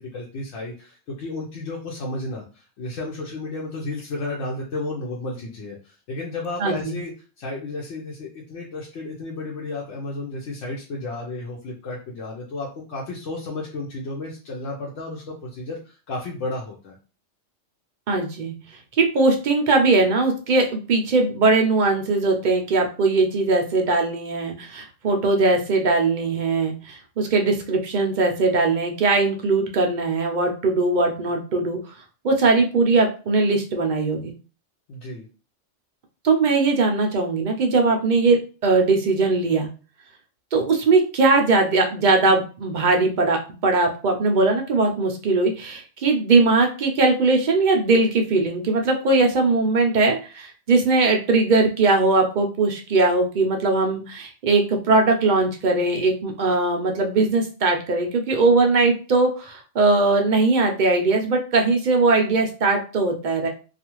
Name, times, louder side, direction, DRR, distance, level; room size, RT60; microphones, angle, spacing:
voice 1, 0.0-17.0 34.9-35.3, left 2 dB, 70° left, -3 dB, 0.9 m, -33 dB
voice 2, 6.6-7.0 18.1-18.5 19.0-31.8 32.2-34.3 36.2-39.7 40.5-63.5, right 3 dB, 60° right, 3 dB, 0.5 m, -20 dB
2.4 x 2.4 x 2.9 m, 0.35 s
omnidirectional pair, 1.3 m